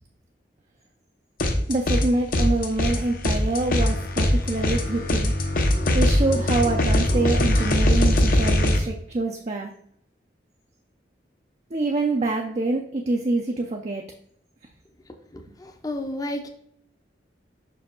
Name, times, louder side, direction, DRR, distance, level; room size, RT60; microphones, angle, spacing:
sound 1, 1.4-2.1 2.3-8.8, left 1 dB, 50° left, 0.8 m, -21 dB
voice 1, 1.7-5.3 5.9-9.7 11.7-14.0, right 2 dB, 40° right, 2 dB, 0.5 m, -25 dB
voice 2, 15.6-16.5, left 1 dB, 20° left, 5 dB, 0.7 m, -31 dB
5.7 x 4.8 x 3.7 m, 0.69 s
head